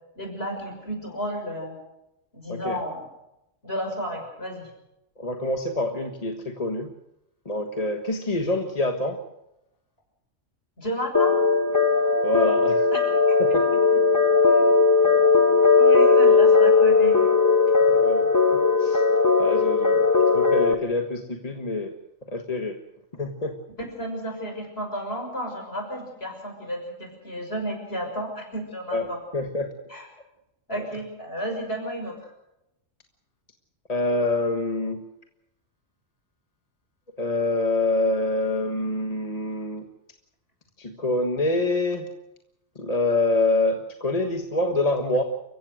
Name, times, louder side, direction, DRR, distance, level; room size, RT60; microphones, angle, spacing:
voice 1, 0.2-1.8 2.3-3.0 3.6-4.7 10.8-11.4 12.9-13.0 13.3-13.8 14.5-14.7 15.7-17.2 24.0-29.2 29.9-30.1 30.7-32.3, equal, 55° left, 3 dB, 6.5 m, -32 dB
voice 2, 5.2-6.9 7.4-9.2 12.2-12.9 13.4-13.6 15.0-15.3 17.9-19.0 19.4-20.0 20.3-21.9 22.3-22.7 23.2-23.5 28.9-29.1 29.3-29.7 33.9-35.0 37.2-39.9 40.8-42.1 42.7-45.2, left 2 dB, 30° left, 4 dB, 1.6 m, -26 dB
sound 1, 11.1-20.7, left 4 dB, 15° left, 1.1 m, -18 dB
29.5 x 16.0 x 6.4 m, 0.87 s
omnidirectional pair, 1.3 m